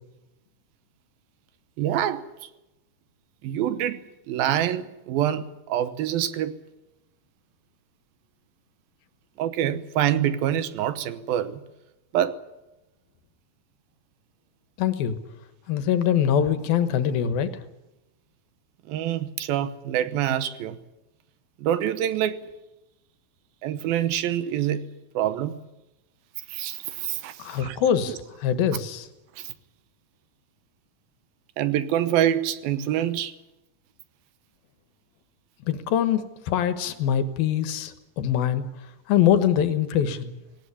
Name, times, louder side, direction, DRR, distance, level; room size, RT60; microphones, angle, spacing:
voice 1, 1.8-2.3 3.4-6.6 9.4-11.6 12.1-12.4 18.9-20.8 21.6-22.4 23.6-24.9 25.1-25.6 26.5-28.2 29.4-29.5 31.6-33.3, right 11 dB, 80° right, 2.8 m, -26 dB
voice 2, 14.8-15.2 15.7-17.5 27.4-29.1 35.7-38.6 39.1-40.4, left 9 dB, 75° left, 3.1 m, -23 dB
19.0 x 18.5 x 9.9 m
omnidirectional pair, 4.3 m